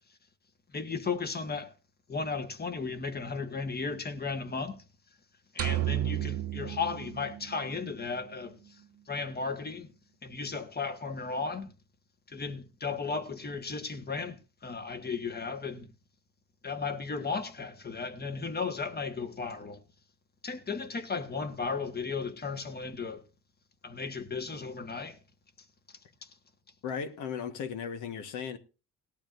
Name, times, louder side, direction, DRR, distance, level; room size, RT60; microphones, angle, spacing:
voice 1, 0.7-1.7 2.1-4.8 5.5-8.5 9.1-9.9 10.2-11.7 12.3-14.3 14.6-15.8 16.6-19.8 20.4-23.2 23.8-25.1, left 4 dB, 30° left, 1.5 m, -35 dB
sound 1, 5.6-7.9, right 13 dB, 50° right, 0.5 m, -32 dB
voice 2, 26.8-28.6, left 7 dB, 80° left, 1.5 m, -36 dB
18.0 x 12.0 x 2.6 m
cardioid pair, 90°, 30 cm